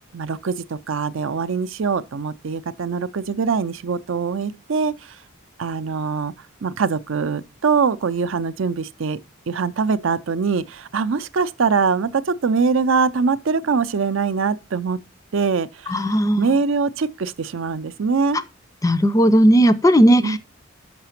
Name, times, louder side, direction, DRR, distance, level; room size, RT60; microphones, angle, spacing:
voice 1, 0.1-5.2 5.6-6.3 6.6-9.2 9.5-15.0 15.3-16.1 16.4-18.4 20.2-20.4, right 5 dB, 65° right, 0.5 m, -23 dB
voice 2, 15.9-16.5 18.8-20.4, equal, 15° left, 0.5 m, -16 dB
6.0 x 5.7 x 5.8 m
head